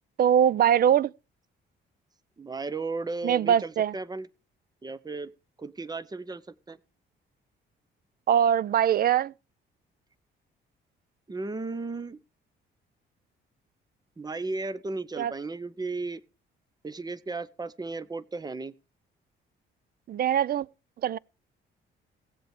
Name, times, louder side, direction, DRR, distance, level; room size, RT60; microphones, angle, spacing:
voice 1, 0.2-1.1 3.2-3.9 8.3-9.3 15.2-15.3 20.1-20.7 21.0-21.2, right 9 dB, 50° right, 0.5 m, -22 dB
voice 2, 2.4-4.3 4.8-5.3 5.6-6.4 6.7-6.8 11.3-12.2 14.2-16.2 16.8-18.7, right 3 dB, 20° right, 0.8 m, -35 dB
17.5 x 7.8 x 3.2 m
cardioid pair, 90°, 20 cm